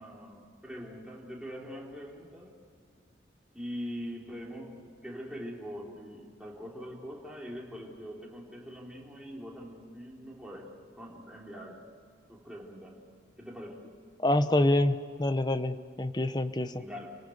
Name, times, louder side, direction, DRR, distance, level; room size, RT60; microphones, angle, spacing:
voice 1, 0.0-2.6 3.5-11.9 12.3-13.0 13.4-13.9 16.8-17.1, equal, 5° right, -3 dB, 3.7 m, -43 dB
voice 2, 14.2-16.8, left 1 dB, 25° left, 11 dB, 0.8 m, -26 dB
29.5 x 18.5 x 8.0 m, 2.2 s
head